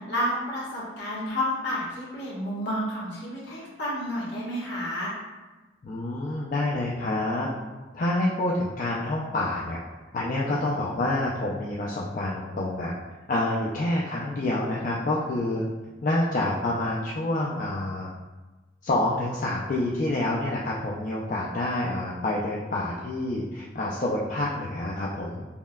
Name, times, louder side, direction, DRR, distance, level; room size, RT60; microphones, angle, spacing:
voice 1, 0.0-5.1, left 1 dB, 70° left, -6 dB, 1.1 m, -30 dB
voice 2, 5.8-7.5 7.9-9.8 10.1-12.9 13.3-15.6 16.0-18.1 18.8-25.5, left 1 dB, 45° left, -5 dB, 0.3 m, -27 dB
5.3 x 2.1 x 2.2 m, 1.2 s
head